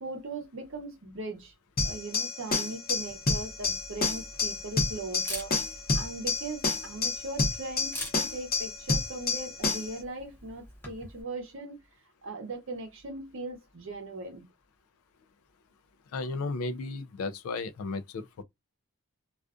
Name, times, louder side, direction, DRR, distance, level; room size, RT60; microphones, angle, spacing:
voice 1, 0.0-1.5 1.8-5.6 5.9-11.8 12.2-14.4, right 2 dB, 65° right, 0.7 m, -39 dB
sound 1, 1.8-10.0, left 3 dB, 40° left, 0.8 m, -29 dB
Camera, 2.9-11.2, left 1 dB, 10° left, 0.6 m, -46 dB
voice 2, 16.1-18.4, left 3 dB, 80° left, 0.3 m, -34 dB
2.4 x 2.3 x 2.4 m
head